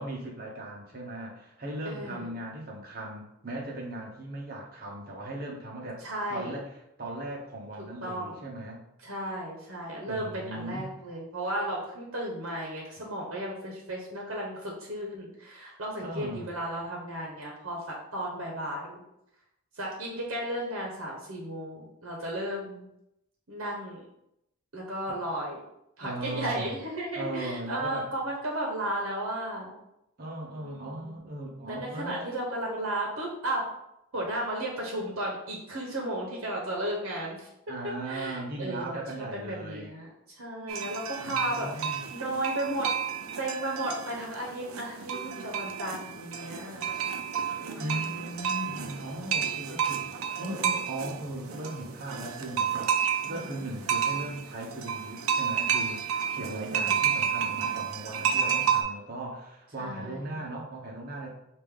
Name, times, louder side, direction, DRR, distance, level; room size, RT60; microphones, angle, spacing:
voice 1, 0.0-6.0 6.3-8.8 10.0-10.9 16.0-16.5 26.0-26.8 27.1-28.1 30.2-32.3 37.7-39.9 41.2-42.0 47.8-61.3, right 1 dB, 45° right, -2 dB, 1.0 m, -38 dB
voice 2, 1.8-2.3 6.0-6.6 8.0-8.4 9.0-19.0 19.8-22.8 23.5-24.0 24.7-25.6 26.0-29.8 30.5-31.2 31.7-33.7 34.1-37.5 38.0-40.1 40.3-42.9 43.4-46.9 47.5-48.1 53.3-53.6 56.4-57.0 59.8-60.4, right 1 dB, 70° right, -2 dB, 1.0 m, -34 dB
sound 1, 40.7-58.8, right 7 dB, 90° right, 0.5 m, -31 dB
5.4 x 2.6 x 3.6 m, 0.82 s
head